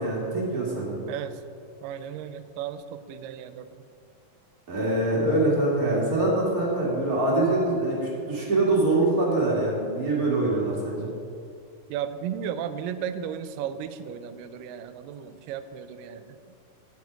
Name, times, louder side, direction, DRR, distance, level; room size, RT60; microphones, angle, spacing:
voice 1, 0.0-1.0 4.7-8.0 8.2-11.1, right 2 dB, 30° right, -5 dB, 2.1 m, -24 dB
voice 2, 1.1-1.4 1.8-3.7 11.9-16.4, right 9 dB, 85° right, 11 dB, 2.2 m, -34 dB
10.0 x 8.5 x 4.7 m, 2.5 s
omnidirectional pair, 3.8 m